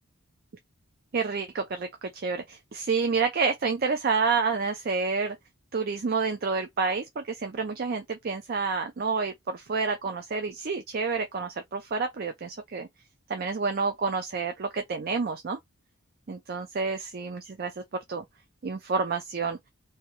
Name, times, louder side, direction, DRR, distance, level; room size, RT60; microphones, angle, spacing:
voice 1, 1.1-5.4 5.7-12.9 13.3-15.6 16.3-17.8 18.1-18.2 18.6-19.6, right 4 dB, 45° right, 0.4 m, -29 dB
2.9 x 2.3 x 2.9 m
head